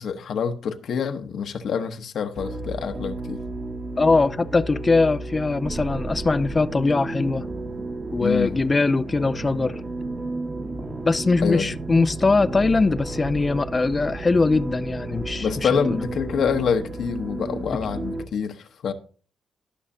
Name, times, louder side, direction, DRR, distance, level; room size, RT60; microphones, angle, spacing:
voice 1, 0.0-3.4 8.2-8.6 11.4-11.8 15.4-18.9, left 6 dB, 65° left, 1.0 m, -26 dB
sound 1, 2.4-18.3, right 2 dB, 30° right, 1.4 m, -33 dB
voice 2, 4.0-7.4 8.1-9.8 11.0-15.7 17.7-17.8, left 3 dB, 25° left, 0.4 m, -21 dB
18.0 x 6.3 x 2.7 m
cardioid pair, 90°, 0 cm